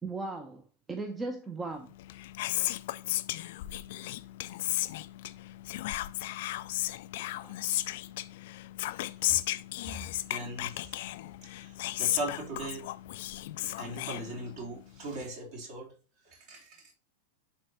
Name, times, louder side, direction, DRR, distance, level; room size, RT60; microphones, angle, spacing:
voice 1, 0.0-0.6 0.9-1.9 7.2-7.5, right 3 dB, 15° right, 0.9 m, -37 dB
Whispering, 1.9-14.8, left 16 dB, 50° left, 0.4 m, -34 dB
voice 2, 10.3-11.0 11.5-12.9 13.8-15.9 16.2-16.9, right 2 dB, 50° right, 3.3 m, -39 dB
10.5 x 4.2 x 2.9 m
figure-of-eight pair, 90°, 0 cm